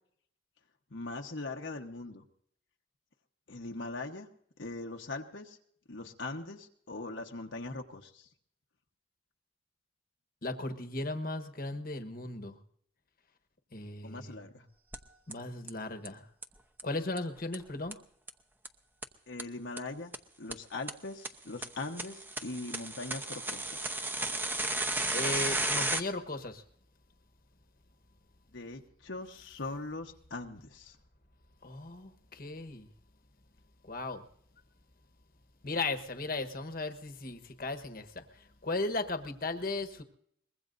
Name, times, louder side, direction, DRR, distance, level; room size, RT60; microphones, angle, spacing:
voice 1, 0.9-2.2 3.5-4.3 4.6-5.6 5.9-8.3 14.0-14.7 19.3-20.1 20.4-23.9 28.5-31.0, left 2 dB, 75° left, 2 dB, 1.2 m, -41 dB
voice 2, 10.4-12.6 13.7-14.3 15.3-16.2 16.8-17.9 25.1-26.6 31.6-32.9 33.8-34.2 35.6-40.0, left 2 dB, 50° left, 8 dB, 1.3 m, -36 dB
sound 1, 14.9-15.0 15.3-15.4 15.7-15.8 16.0-16.1 16.4-16.5 16.8-16.9 17.2-17.3 17.5-17.6 17.9-18.0 18.3-18.4 18.6-18.7 19.0-19.1 19.4-19.5 19.8-19.9 20.1-20.2 20.5-20.6 20.9-21.0 21.2-21.3 21.6-26.0, right 2 dB, 10° right, 0.8 m, -33 dB
23.5 x 21.5 x 2.6 m, 0.68 s
head